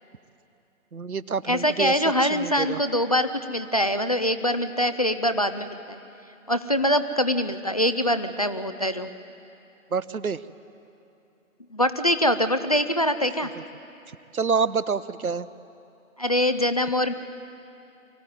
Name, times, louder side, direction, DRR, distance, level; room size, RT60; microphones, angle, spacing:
voice 1, 0.9-1.9 2.2-2.8 9.9-10.4 14.3-15.5, right 5 dB, 85° right, 17 dB, 0.9 m, -27 dB
voice 2, 1.5-6.0 6.5-9.1 11.7-13.5 16.2-17.1, equal, 30° left, 10 dB, 0.4 m, -24 dB
23.5 x 15.0 x 9.3 m, 2.8 s
figure-of-eight pair, 135°, 42 cm